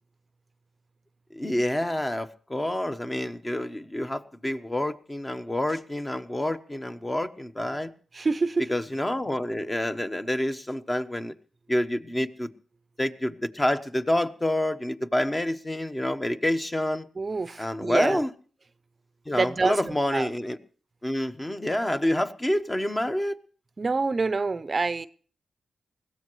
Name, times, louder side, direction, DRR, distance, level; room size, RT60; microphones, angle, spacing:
voice 1, 1.3-7.9 8.7-11.3 11.7-12.5 13.0-17.1 17.6-18.3 19.3-20.6 21.0-23.3, left 1 dB, 20° left, 1.1 m, -28 dB
voice 2, 8.1-8.7 17.2-18.2 19.3-20.3 23.8-25.1, right 3 dB, 40° right, 0.6 m, -27 dB
21.0 x 16.0 x 3.1 m
cardioid pair, 55°, 0 cm